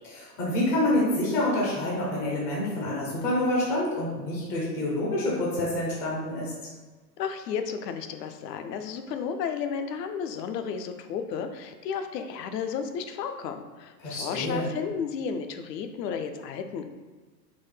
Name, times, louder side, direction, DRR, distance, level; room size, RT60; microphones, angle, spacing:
voice 1, 0.1-6.5 14.0-14.7, left 1 dB, 20° left, -5 dB, 0.4 m, -27 dB
voice 2, 7.2-16.8, left 6 dB, 75° left, 7 dB, 0.6 m, -33 dB
3.8 x 2.1 x 3.2 m, 1.3 s
hypercardioid pair, 125°, 50 cm